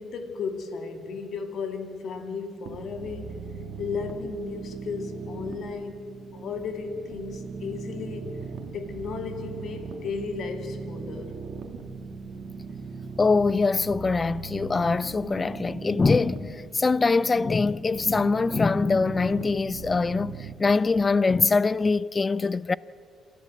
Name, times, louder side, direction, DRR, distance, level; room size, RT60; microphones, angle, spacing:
voice 1, 0.0-3.4 3.8-8.4 8.7-11.3, left 5 dB, 65° left, 2.3 m, -34 dB
sound 1, 2.7-20.5, right 5 dB, 80° right, 1.7 m, -39 dB
voice 2, 13.2-22.8, left 4 dB, 30° left, 0.4 m, -23 dB
28.0 x 13.5 x 7.6 m
cardioid pair, 90°, 0 cm